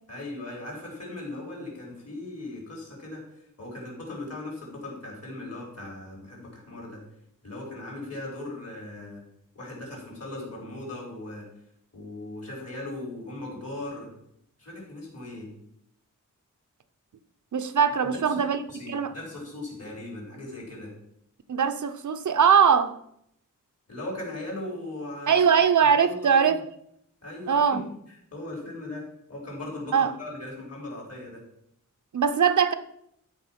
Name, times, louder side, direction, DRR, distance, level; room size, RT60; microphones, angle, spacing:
voice 1, 0.1-3.2 3.6-7.0 7.4-9.2 9.5-11.4 11.9-14.1 14.6-15.5 18.0-18.4 18.7-20.9 23.9-26.5 27.2-27.8 28.3-31.4, left 2 dB, 50° left, 4.2 m, -38 dB
voice 2, 17.5-18.6 18.9-19.1 21.5-22.9 25.3-26.6 27.5-27.8 29.9-30.1 32.1-32.7, right 7 dB, 65° right, 0.7 m, -21 dB
13.0 x 4.7 x 5.8 m
wide cardioid pair, 130°, 32 cm